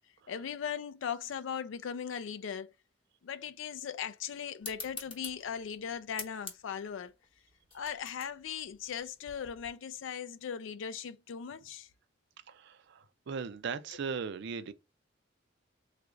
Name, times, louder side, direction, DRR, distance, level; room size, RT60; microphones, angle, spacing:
voice 1, 0.3-2.7 3.2-7.1 7.7-11.9, left 7 dB, 70° left, 0.4 m, -38 dB
sound 1, 4.6-9.7, left 4 dB, 30° left, 0.9 m, -47 dB
voice 2, 12.5-14.7, right 5 dB, 60° right, 0.4 m, -38 dB
3.4 x 2.4 x 3.0 m
head